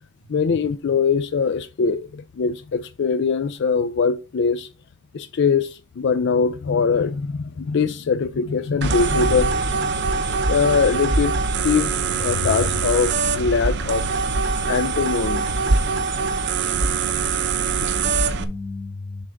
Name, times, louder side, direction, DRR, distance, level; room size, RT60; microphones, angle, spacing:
voice 1, 0.3-4.7 5.1-9.9 10.5-11.3 11.6-14.1 14.7-15.5, left 5 dB, 60° left, 0.4 m, -22 dB
sound 1, 8.8-18.4, right 4 dB, 60° right, 0.8 m, -23 dB
voice 2, 17.6-19.2, left 3 dB, 25° left, 1.2 m, -36 dB
6.9 x 3.4 x 5.1 m
head